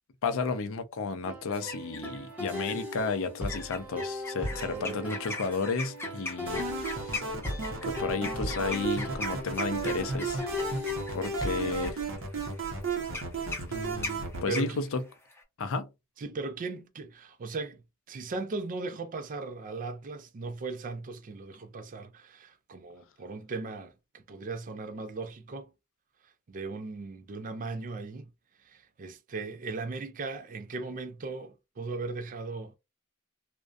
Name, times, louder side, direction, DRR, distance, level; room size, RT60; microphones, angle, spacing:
voice 1, 0.2-7.2 7.8-10.4 11.1-12.0 13.7-15.0 15.6-15.9, left 4 dB, 65° left, 0.5 m, -32 dB
sound 1, 1.2-11.8, equal, 5° right, 0.9 m, -38 dB
sound 2, 1.5-2.2 2.6-2.9 3.5-15.4, left 3 dB, 10° left, 0.6 m, -40 dB
voice 2, 4.6-5.2 14.5-14.8 16.2-17.8 18.1-25.7 26.5-28.3 28.7-32.7, right 3 dB, 40° right, 0.4 m, -38 dB
sound 3, 6.5-14.4, right 4 dB, 60° right, 0.8 m, -34 dB
2.5 x 2.1 x 2.4 m
head